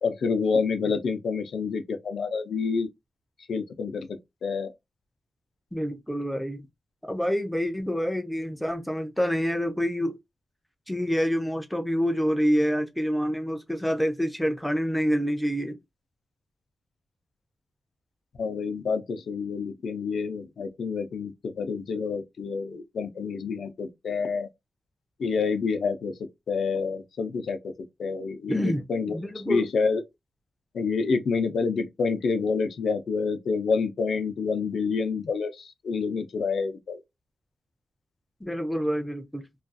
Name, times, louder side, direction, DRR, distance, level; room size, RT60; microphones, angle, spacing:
voice 1, 0.0-2.9 3.5-4.1 4.4-4.7 18.4-24.5 25.2-26.1 26.5-27.7 28.0-30.0 30.7-37.0, left 5 dB, 75° left, 0.4 m, -28 dB
voice 2, 5.7-6.6 7.1-10.2 10.9-15.8 28.5-29.7 38.4-39.4, equal, 5° left, 0.4 m, -27 dB
2.4 x 2.3 x 2.5 m
wide cardioid pair, 175°, 0 cm